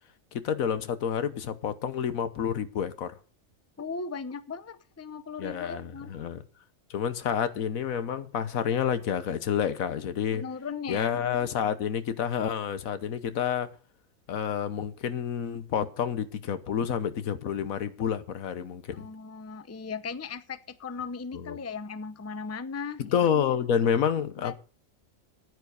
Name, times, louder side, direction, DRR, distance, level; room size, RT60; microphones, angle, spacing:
voice 1, 0.3-3.1 5.4-6.4 6.9-10.4 10.9-13.7 14.3-19.1 21.3-21.6 23.0-24.5, left 8 dB, 90° left, 1.4 m, -29 dB
voice 2, 3.8-6.1 10.3-11.2 18.9-23.2 24.4-24.5, left 5 dB, 20° left, 0.5 m, -37 dB
9.6 x 9.6 x 6.4 m
omnidirectional pair, 1.4 m